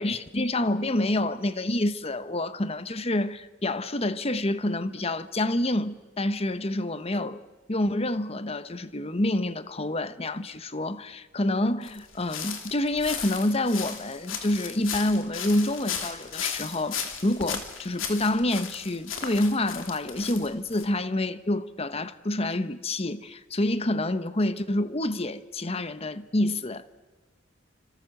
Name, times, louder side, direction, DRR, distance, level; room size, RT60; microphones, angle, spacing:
voice 1, 0.0-7.4 7.7-26.9, left 1 dB, 30° left, 1.1 m, -27 dB
sound 1, 11.8-20.8, left 7 dB, 85° left, 3.0 m, -36 dB
29.0 x 26.0 x 7.9 m
head